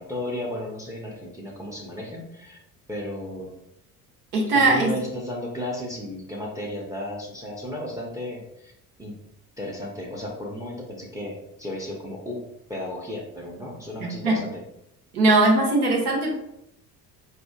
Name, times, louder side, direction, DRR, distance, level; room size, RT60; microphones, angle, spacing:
voice 1, 0.0-2.6 2.9-3.6 4.5-8.7 9.0-9.1 9.6-12.4 12.7-14.5, left 1 dB, 5° right, -2 dB, 0.7 m, -34 dB
voice 2, 4.3-4.9 14.0-14.4 15.1-16.3, right 2 dB, 70° right, -1 dB, 1.0 m, -20 dB
4.1 x 2.4 x 2.3 m, 0.80 s
figure-of-eight pair, 55°, 47 cm